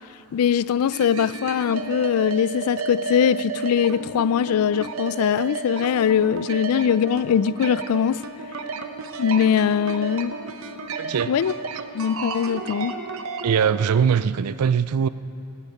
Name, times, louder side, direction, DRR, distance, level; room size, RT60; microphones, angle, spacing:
voice 1, 0.3-8.2 9.2-10.4 11.3-11.5 11.9-12.9, left 8 dB, 80° left, 0.3 m, -21 dB
sound 1, 0.9-13.8, right 4 dB, 65° right, 0.8 m, -33 dB
voice 2, 11.0-11.3 13.4-15.1, right 7 dB, 85° right, 0.4 m, -21 dB
18.0 x 7.5 x 8.5 m
head